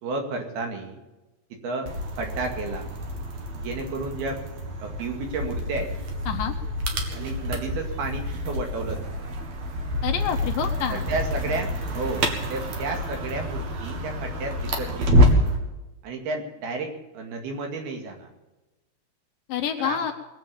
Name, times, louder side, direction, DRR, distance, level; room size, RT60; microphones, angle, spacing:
voice 1, 0.0-1.0 1.6-1.9 2.2-2.9 3.5-4.4 4.8-5.9 7.1-9.2 10.9-15.5 16.0-18.3 19.8-20.1, right 3 dB, 70° right, 2 dB, 4.1 m, -32 dB
sound 1, 1.9-15.6, equal, 50° right, 2.8 m, -27 dB
voice 2, 10.0-11.1 19.5-20.1, left 8 dB, 70° left, 5 dB, 2.3 m, -27 dB
21.5 x 7.8 x 7.1 m, 1.1 s
omnidirectional pair, 4.6 m